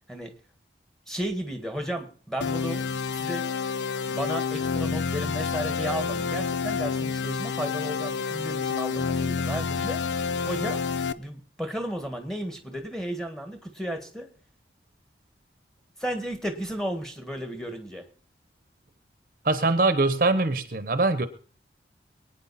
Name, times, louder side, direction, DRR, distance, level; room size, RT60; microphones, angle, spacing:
voice 1, 1.1-2.8 3.1-3.5 4.1-10.0 10.5-10.8 11.2-14.3 16.0-18.0, equal, 5° left, 5 dB, 1.6 m, -33 dB
sound 1, 2.4-11.1, left 5 dB, 85° left, 0.6 m, -29 dB
voice 2, 19.4-21.3, right 3 dB, 50° right, 12 dB, 0.9 m, -23 dB
23.0 x 9.3 x 4.2 m, 0.43 s
head